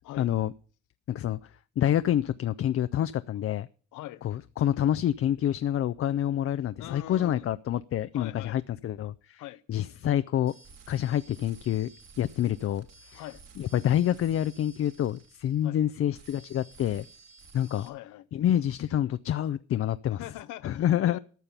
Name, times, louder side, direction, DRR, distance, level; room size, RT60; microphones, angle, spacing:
voice 1, 0.2-0.5 1.1-1.4 1.8-3.7 4.2-9.4 9.7-10.5 10.9-11.9 12.2-12.9 13.1-13.2 13.6-17.1 17.5-17.9 18.3-20.2 20.6-21.2, left 11 dB, 50° left, 0.4 m, -27 dB
voice 2, 3.9-4.2 6.8-7.5 8.1-8.6 9.4-9.6 13.1-13.4 15.6-15.8 17.7-18.3 20.1-21.2, left 14 dB, 85° left, 0.7 m, -42 dB
sound 1, 10.5-15.8 16.1-17.9, right 4 dB, 60° right, 2.4 m, -53 dB
14.0 x 5.6 x 6.8 m
cardioid pair, 90°, 30 cm